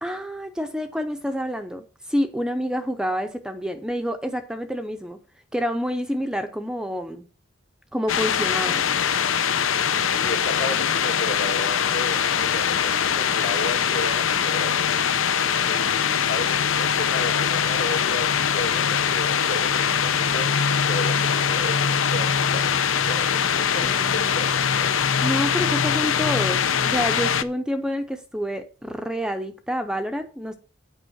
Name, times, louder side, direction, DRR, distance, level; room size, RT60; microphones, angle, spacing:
voice 1, 0.0-5.2 5.5-7.2 7.9-8.8 23.8-24.4 25.2-30.6, equal, 5° right, 0.6 m, -28 dB
sound 1, 8.1-27.4, left 7 dB, 75° left, 0.7 m, -22 dB
voice 2, 10.1-15.1 15.7-20.5 20.9-24.9, left 2 dB, 55° left, 1.8 m, -34 dB
9.0 x 5.4 x 7.8 m
head